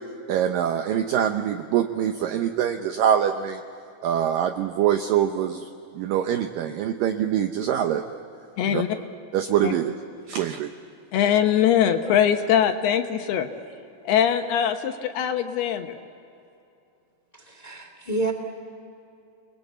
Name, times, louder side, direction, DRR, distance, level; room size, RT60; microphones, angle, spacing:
voice 1, 0.3-3.6 4.0-5.7 6.0-8.0 8.7-8.8 9.3-10.0 10.3-10.7, right 9 dB, 80° right, 7 dB, 2.0 m, -24 dB
voice 2, 8.6-8.9 9.6-9.7 11.1-13.5 14.1-16.0, left 9 dB, 75° left, 6 dB, 2.9 m, -22 dB
voice 3, 17.4-18.3, right 2 dB, 35° left, 4 dB, 0.6 m, -29 dB
30.0 x 21.5 x 8.2 m, 2.7 s
omnidirectional pair, 4.9 m